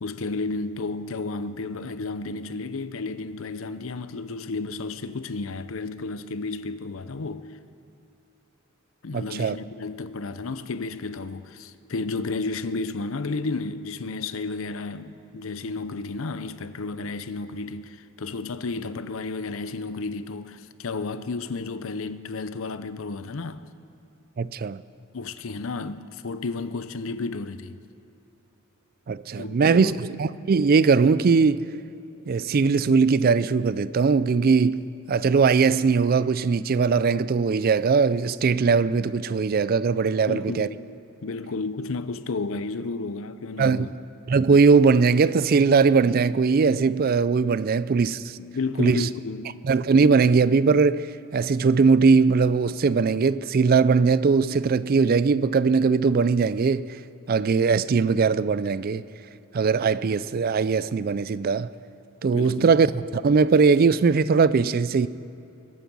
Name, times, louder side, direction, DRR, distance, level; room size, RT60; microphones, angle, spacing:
voice 1, 0.0-7.6 9.0-23.6 25.1-27.8 29.4-30.0 40.3-41.0 41.2-43.9 48.4-49.6 62.3-62.7, left 3 dB, 65° left, 0.6 m, -32 dB
voice 2, 9.1-9.6 24.4-24.8 29.1-31.7 32.3-40.7 43.6-43.9 44.3-48.4 48.8-49.1 49.6-57.0 57.3-59.0 59.5-61.7 62.2-65.1, right 5 dB, 45° right, 0.4 m, -20 dB
22.0 x 9.1 x 6.2 m
head